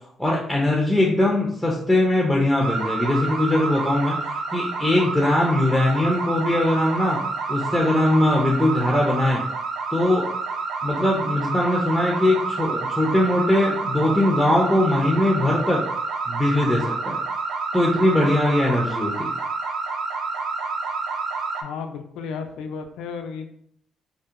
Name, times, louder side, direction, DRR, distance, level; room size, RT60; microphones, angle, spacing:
voice 1, 0.2-7.2 7.5-9.4 9.9-10.3 10.8-15.8 16.3-17.2 17.7-19.3, left 1 dB, ahead, -2 dB, 0.5 m, -21 dB
sound 1, 2.6-21.6, right 4 dB, 60° right, 0.3 m, -28 dB
voice 2, 21.6-23.5, left 5 dB, 90° left, 7 dB, 0.3 m, -33 dB
2.7 x 2.1 x 2.4 m, 0.65 s
cardioid pair, 90°, 0 cm